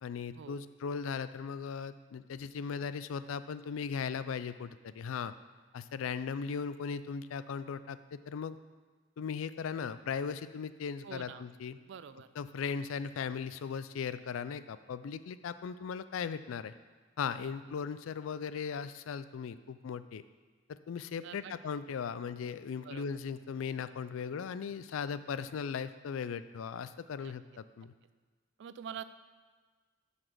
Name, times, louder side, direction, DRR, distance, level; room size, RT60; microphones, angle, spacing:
voice 1, 0.0-5.3 5.7-8.6 9.2-11.8 12.4-16.7 17.2-20.2 20.7-27.9, left 6 dB, 85° left, 13 dB, 0.4 m, -38 dB
voice 2, 11.0-11.5 11.9-12.3 17.4-17.5 21.2-21.5 22.8-23.0 27.2-27.3 28.6-29.0, right 7 dB, 60° right, 13 dB, 0.3 m, -45 dB
7.5 x 4.1 x 6.6 m, 1.5 s
head